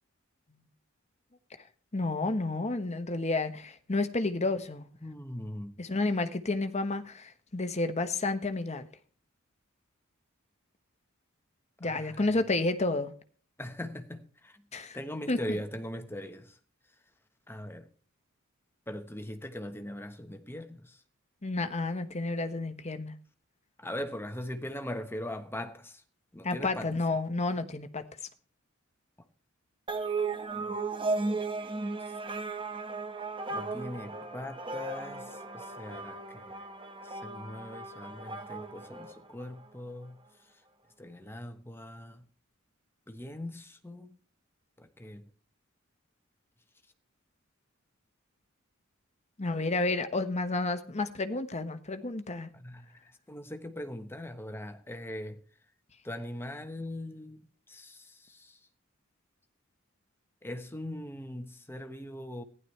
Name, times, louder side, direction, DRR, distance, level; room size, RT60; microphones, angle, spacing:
voice 1, 1.9-4.9 5.8-8.9 11.8-13.1 14.7-15.0 15.3-15.6 21.4-23.1 26.4-28.0 49.4-52.5, left 2 dB, 35° left, 1.2 m, -31 dB
voice 2, 5.0-5.8 11.8-12.3 13.6-14.6 14.9-16.6 17.5-17.9 18.9-21.0 23.8-26.0 26.3-26.9 30.6-30.8 33.5-36.6 37.0-40.2 41.0-42.2 43.1-44.2 44.8-45.3 52.5-55.4 56.0-57.4 57.7-58.6 60.4-62.4, left 1 dB, 10° left, 1.2 m, -41 dB
sound 1, 29.9-39.7, right 3 dB, 25° right, 1.2 m, -36 dB
15.0 x 11.0 x 3.3 m
head